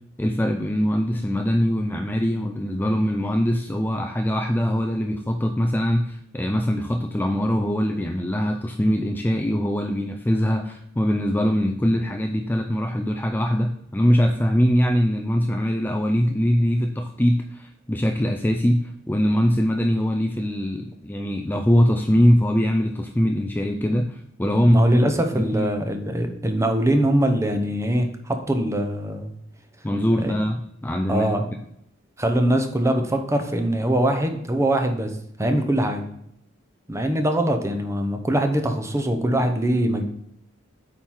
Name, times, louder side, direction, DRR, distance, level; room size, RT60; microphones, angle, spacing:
voice 1, 0.2-24.8 25.3-25.7 29.8-31.3, equal, 10° left, 4 dB, 0.4 m, -22 dB
voice 2, 24.6-29.3 30.2-30.3 31.1-31.4 32.2-35.1 35.4-36.1 36.9-40.0, right 1 dB, 15° right, 5 dB, 0.8 m, -22 dB
8.5 x 4.6 x 3.8 m, 0.72 s
head